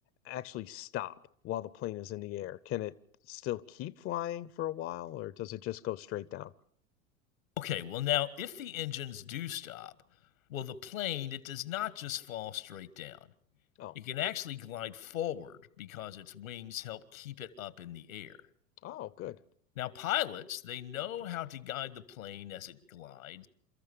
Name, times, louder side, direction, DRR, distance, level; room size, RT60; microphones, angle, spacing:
voice 1, 0.2-1.2 1.4-2.9 3.2-6.5 13.8-14.0 18.8-19.4, left 14 dB, 35° left, 0.7 m, -38 dB
voice 2, 7.6-9.9 10.5-13.2 13.9-18.4 19.8-23.5, left 13 dB, 75° left, 1.5 m, -37 dB
29.0 x 14.0 x 6.9 m
hypercardioid pair, 90°, 41 cm